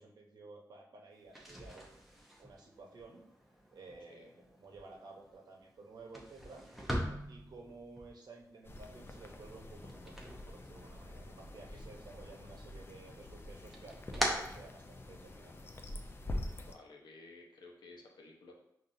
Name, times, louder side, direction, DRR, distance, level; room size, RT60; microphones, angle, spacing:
voice 1, 0.0-3.2 3.7-6.6 7.3-15.5, right 3 dB, 70° right, 0 dB, 0.8 m, -54 dB
sound 1, 1.2-11.2 11.5-12.4 12.8-15.4, equal, ahead, 0.7 m, -42 dB
sound 2, 8.6-16.7, left 1 dB, 30° left, 0.4 m, -46 dB
voice 2, 16.6-18.6, left 3 dB, 85° left, 0 dB, 0.8 m, -55 dB
5.5 x 2.6 x 2.6 m, 0.78 s
wide cardioid pair, 105°, 7 cm